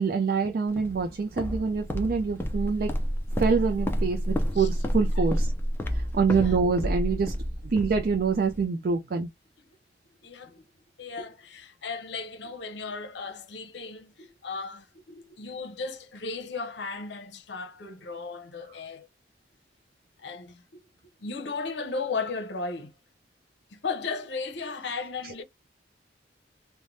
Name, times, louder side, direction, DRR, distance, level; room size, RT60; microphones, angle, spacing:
voice 1, 0.0-2.9 3.3-5.5 5.9-7.4 7.6-9.3 25.2-25.3, right 5 dB, 55° right, 0.4 m, -26 dB
Walk footsteps, 0.8-8.6, equal, 15° left, 0.4 m, -29 dB
voice 2, 10.2-10.6 11.0-19.1 20.2-20.8 21.2-22.9 23.7-25.4, left 4 dB, 80° left, 0.7 m, -36 dB
3.2 x 2.1 x 2.6 m
head